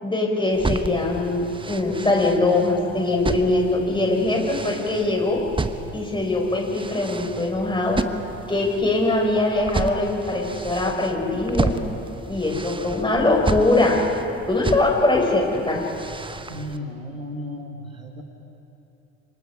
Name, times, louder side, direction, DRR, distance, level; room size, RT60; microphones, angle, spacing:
voice 1, 0.0-5.4 5.9-8.0 8.5-11.7 12.3-14.1 14.5-15.8, left 2 dB, 10° left, 0 dB, 6.0 m, -22 dB
sound 1, 0.5-16.8, right 3 dB, 15° right, 1.0 m, -32 dB
voice 2, 16.5-18.2, left 1 dB, 85° right, 4 dB, 1.8 m, -34 dB
29.5 x 26.0 x 5.0 m, 2.9 s
figure-of-eight pair, 60°, 39 cm